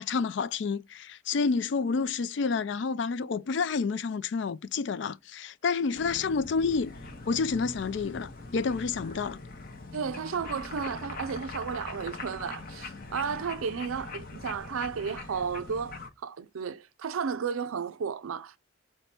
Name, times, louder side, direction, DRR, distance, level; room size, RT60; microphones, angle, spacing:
voice 1, 0.0-6.9 7.3-9.4, left 5 dB, 60° left, 0.4 m, -29 dB
sound 1, 5.9-16.1, left 3 dB, 45° left, 0.8 m, -42 dB
voice 2, 9.9-18.6, right 6 dB, 90° right, 0.5 m, -33 dB
5.9 x 2.2 x 4.0 m
head